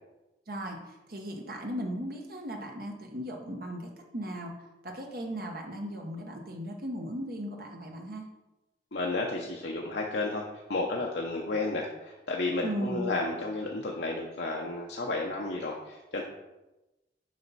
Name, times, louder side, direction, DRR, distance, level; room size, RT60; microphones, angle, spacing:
voice 1, 0.5-4.5 4.8-8.3 12.6-13.1, equal, 55° right, 1 dB, 1.0 m, -37 dB
voice 2, 8.9-16.2, left 2 dB, 70° left, -1 dB, 0.8 m, -32 dB
7.6 x 5.7 x 4.1 m, 1.0 s
head